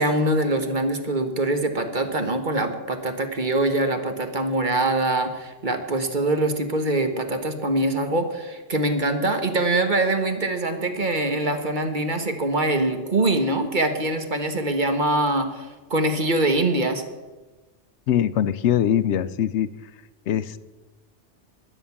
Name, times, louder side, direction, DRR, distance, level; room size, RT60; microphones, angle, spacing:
voice 1, 0.0-17.0, right 2 dB, 40° right, 6 dB, 1.4 m, -23 dB
voice 2, 18.1-19.7 20.3-20.6, left 10 dB, 75° left, 15 dB, 0.9 m, -22 dB
13.0 x 10.0 x 7.1 m, 1.2 s
omnidirectional pair, 1.2 m